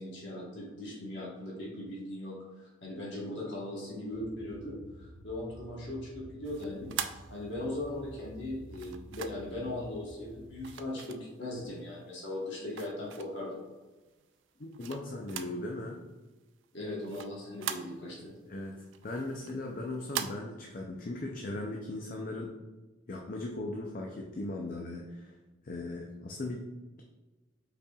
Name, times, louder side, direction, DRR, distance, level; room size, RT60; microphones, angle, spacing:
voice 1, 0.0-7.0 7.3-13.6 16.7-18.3, left 1 dB, 60° left, -4 dB, 1.2 m, -39 dB
sound 1, 4.1-10.7, equal, 40° right, 1.0 m, -51 dB
sound 2, 6.4-7.9 8.7-9.6 10.6-11.7 12.2-13.5 14.1-15.7 15.9-16.0 16.4-18.3 18.7-20.3, right 9 dB, 65° right, 0.3 m, -41 dB
voice 2, 14.6-16.0 18.5-22.5 23.1-25.3 25.6-26.7, left 2 dB, 40° left, 0 dB, 0.5 m, -38 dB
5.4 x 4.1 x 2.3 m, 1.2 s
head